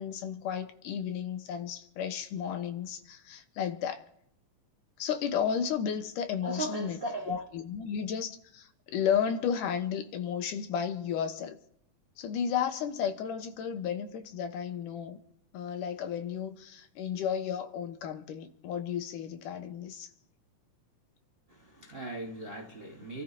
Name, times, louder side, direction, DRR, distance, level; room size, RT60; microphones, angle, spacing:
voice 1, 0.0-4.0 5.0-7.0 7.3-11.6 12.2-15.2 15.5-20.1, left 8 dB, 80° left, 2.6 m, -33 dB
voice 2, 6.4-7.4 21.5-23.2, right 1 dB, 85° right, 0.5 m, -37 dB
28.0 x 13.5 x 2.8 m
omnidirectional pair, 3.7 m